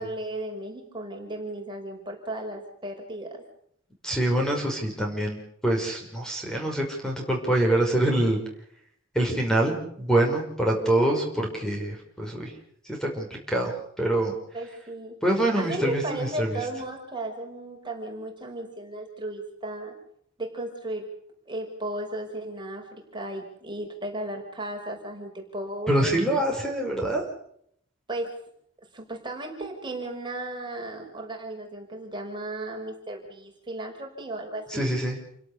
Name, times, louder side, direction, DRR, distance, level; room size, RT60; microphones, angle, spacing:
voice 1, 0.0-3.4 14.5-15.2 15.5-20.0 20.4-21.1 21.5-26.2 28.1-28.4 28.9-34.9, right 1 dB, 25° right, 2 dB, 5.6 m, -35 dB
voice 2, 4.0-5.4 5.6-8.4 9.1-12.5 12.9-14.3 15.2-16.6 25.9-27.2 34.7-35.2, right 1 dB, 5° left, 1 dB, 5.6 m, -25 dB
29.5 x 17.5 x 6.9 m, 0.69 s
head